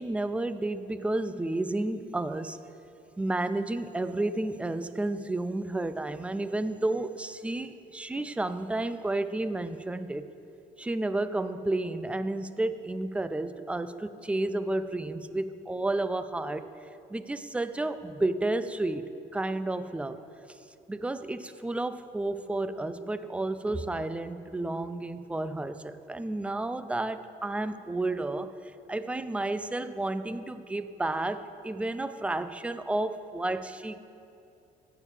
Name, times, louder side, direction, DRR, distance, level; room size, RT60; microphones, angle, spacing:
voice 1, 0.0-2.6 3.2-10.3 10.8-16.7 17.1-20.2 20.9-28.5 28.9-34.0, right 2 dB, 5° right, 12 dB, 0.3 m, -31 dB
16.5 x 6.9 x 3.3 m, 2.7 s
cardioid pair, 110°, 17 cm